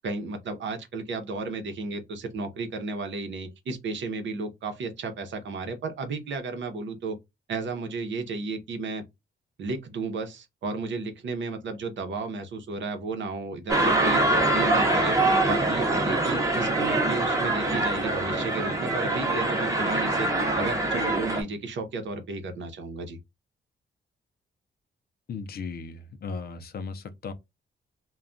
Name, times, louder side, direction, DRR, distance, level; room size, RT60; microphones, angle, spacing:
voice 1, 0.0-7.2 7.5-9.0 9.6-15.2 15.4-20.3 20.6-23.2, right 3 dB, 75° right, 0.8 m, -33 dB
sound 1, 13.7-21.4, right 2 dB, 15° right, 0.7 m, -24 dB
voice 2, 25.3-27.3, left 4 dB, 55° left, 0.5 m, -36 dB
2.3 x 2.2 x 3.7 m
wide cardioid pair, 150°, 19 cm